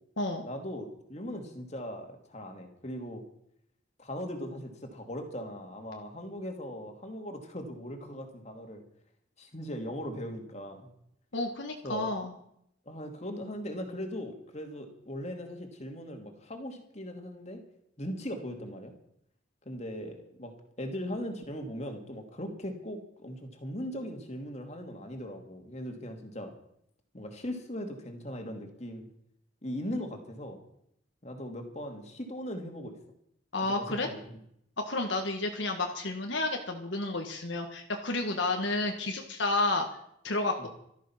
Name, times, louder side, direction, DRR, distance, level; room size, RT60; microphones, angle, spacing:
voice 1, 0.4-3.2 4.0-8.8 9.4-10.9 11.8-12.1 12.9-17.6 18.0-18.9 19.7-20.5 20.8-26.5 27.1-29.1 29.6-30.6 31.2-33.0 33.7-34.4 40.6-40.7, equal, 35° left, 3 dB, 2.4 m, -39 dB
voice 2, 11.3-12.3 33.5-34.1 34.8-39.8 40.2-40.7, left 2 dB, 70° left, 3 dB, 1.6 m, -31 dB
14.0 x 13.5 x 5.8 m, 0.74 s
head